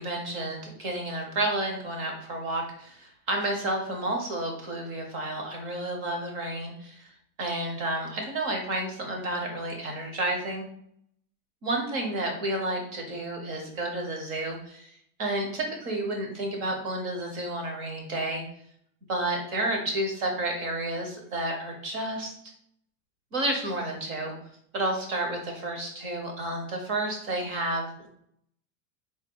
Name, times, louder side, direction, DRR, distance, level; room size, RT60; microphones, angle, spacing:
voice 1, 0.0-7.1 7.4-10.6 11.6-14.9 15.2-18.4 19.1-22.3 23.3-24.3 24.7-28.1, right 1 dB, 30° right, 1 dB, 0.9 m, -31 dB
3.7 x 2.7 x 4.4 m, 0.68 s
supercardioid pair, 180°, 43 cm